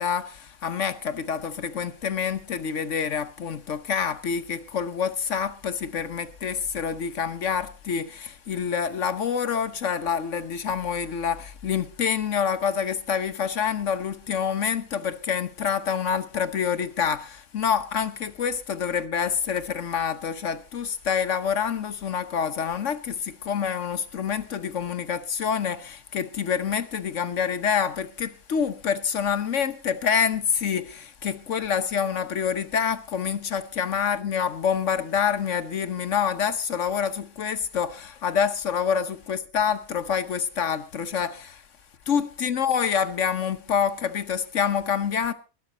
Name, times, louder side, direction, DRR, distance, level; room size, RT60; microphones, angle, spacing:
voice 1, 0.0-41.6 42.1-45.3, left 7 dB, 65° left, 1.2 m, -27 dB
19.0 x 11.5 x 4.0 m
omnidirectional pair, 1.4 m